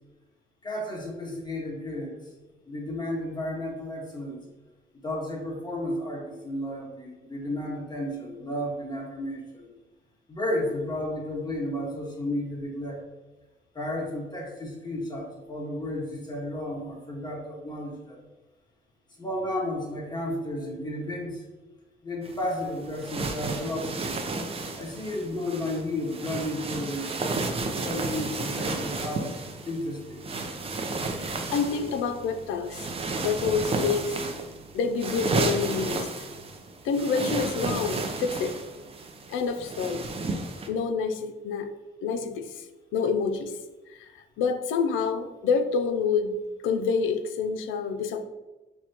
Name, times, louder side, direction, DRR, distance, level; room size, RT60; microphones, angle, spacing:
voice 1, 0.6-2.2 2.7-4.4 5.0-9.7 10.3-13.0 13.7-18.2 19.2-21.4 22.0-24.2 24.8-27.1 27.7-29.3 29.6-30.3, left 1 dB, 20° left, -3 dB, 1.5 m, -33 dB
sound 1, 22.2-40.7, right 3 dB, 30° right, 0.5 m, -32 dB
voice 2, 31.5-32.8 33.2-34.2 34.7-36.1 36.8-38.6 39.3-40.0 40.7-41.7 42.0-42.5 42.9-43.5 43.9-44.0 44.4-46.4 46.6-48.3, left 5 dB, 85° left, 9 dB, 0.4 m, -27 dB
5.9 x 2.1 x 2.8 m, 1.1 s
cardioid pair, 90°, 20 cm